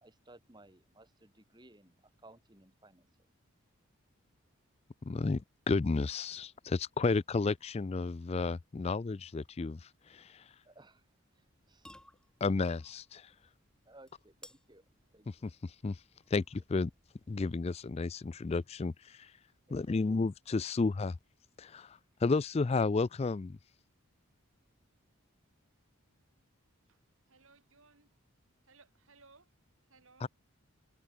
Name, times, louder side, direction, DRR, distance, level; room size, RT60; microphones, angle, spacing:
voice 1, 0.0-3.1 10.7-11.1 11.3-11.9 13.9-15.5 19.7-20.0, right 2 dB, 20° right, 2.3 m, -59 dB
voice 2, 5.1-5.4 5.7-10.5 12.4-13.3 15.3-16.0 16.3-16.9 17.3-19.3 19.7-21.2 21.6-23.6 30.2-30.3, left 3 dB, 30° left, 0.3 m, -32 dB
sound 1, 11.4-17.8, left 1 dB, 5° left, 2.4 m, -61 dB
voice 3, 27.3-28.2 28.6-29.5 29.9-30.3, right 4 dB, 65° right, 4.2 m, -62 dB
head